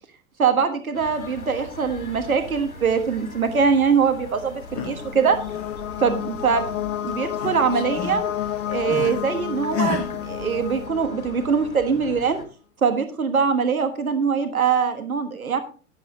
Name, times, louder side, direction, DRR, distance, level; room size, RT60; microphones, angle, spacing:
voice 1, 0.4-5.4 6.0-8.3 8.7-12.4 12.8-15.6, right 6 dB, 80° right, 8 dB, 1.5 m, -22 dB
sound 1, 0.9-12.4, left 2 dB, 80° left, 3.6 m, -41 dB
sound 2, 4.3-12.0, left 12 dB, 65° left, 0.6 m, -31 dB
sound 3, 4.5-5.1 5.4-6.8 7.1-9.3 9.7-10.1, left 6 dB, 35° left, 1.6 m, -31 dB
12.0 x 10.5 x 2.7 m, 0.37 s
figure-of-eight pair, 95°, 42 cm